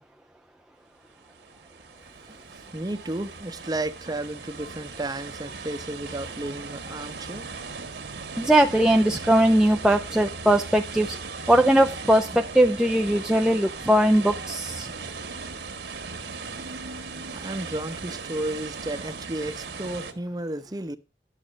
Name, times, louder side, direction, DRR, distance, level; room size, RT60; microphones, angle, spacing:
sound 1, 1.1-20.1, right 4 dB, 70° right, 1.5 m, -38 dB
voice 1, 2.1-7.5 17.3-21.0, right 1 dB, 20° right, 0.8 m, -33 dB
voice 2, 8.4-11.2 11.5-14.9, right 1 dB, 5° right, 0.4 m, -20 dB
11.0 x 6.7 x 5.1 m
head